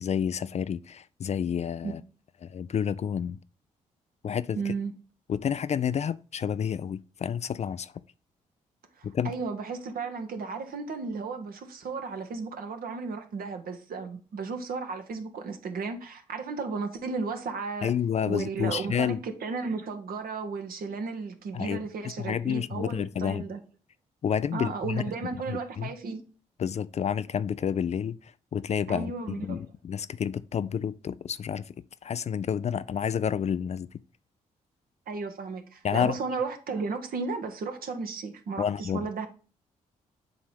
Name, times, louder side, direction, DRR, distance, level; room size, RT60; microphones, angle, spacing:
voice 1, 0.0-2.0 2.4-3.4 4.2-4.7 5.3-7.9 9.0-9.3 17.8-19.2 21.5-21.8 22.2-23.5 24.2-25.9 26.6-31.7 32.0-33.9 35.8-36.2 38.6-39.1, left 8 dB, 40° left, 0.4 m, -30 dB
voice 2, 4.5-4.9 9.0-17.9 18.3-23.6 24.5-26.2 28.9-29.6 35.1-39.3, right 4 dB, 60° right, 1.1 m, -34 dB
7.7 x 3.0 x 4.9 m
hypercardioid pair, 40°, 17 cm